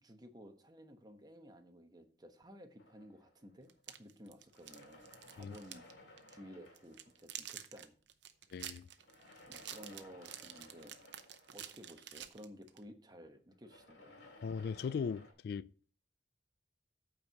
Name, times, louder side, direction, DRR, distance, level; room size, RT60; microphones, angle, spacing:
voice 1, 0.0-5.9 6.3-7.9 9.5-11.0 11.5-14.2, equal, 25° right, 1.1 m, -55 dB
sound 1, 2.8-4.0 4.5-7.6 9.0-12.4 13.5-15.3, left 1 dB, 90° left, 2.6 m, -59 dB
sound 2, 3.7-5.9 6.2-6.4 6.7-12.8, right 11 dB, 75° right, 0.8 m, -49 dB
voice 2, 8.5-8.9 14.4-15.9, left 6 dB, 60° left, 0.3 m, -39 dB
8.6 x 4.6 x 6.3 m
head